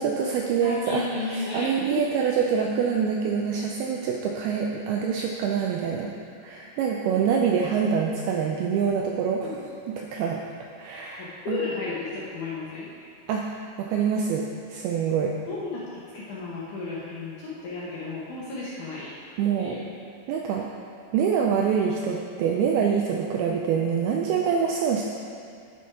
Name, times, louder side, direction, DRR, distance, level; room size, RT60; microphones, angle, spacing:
voice 1, 0.0-6.1 6.4-10.4 10.8-11.6 13.3-14.4 14.7-15.3 19.4-19.8 20.3-20.7 21.1-25.0, right 6 dB, 90° right, 0 dB, 2.2 m, -25 dB
voice 2, 0.6-2.1 9.4-9.9 11.2-12.9 15.5-19.1 19.6-19.8, left 3 dB, 70° left, -7 dB, 1.9 m, -33 dB
10.5 x 6.3 x 4.6 m, 2.5 s
omnidirectional pair, 5.0 m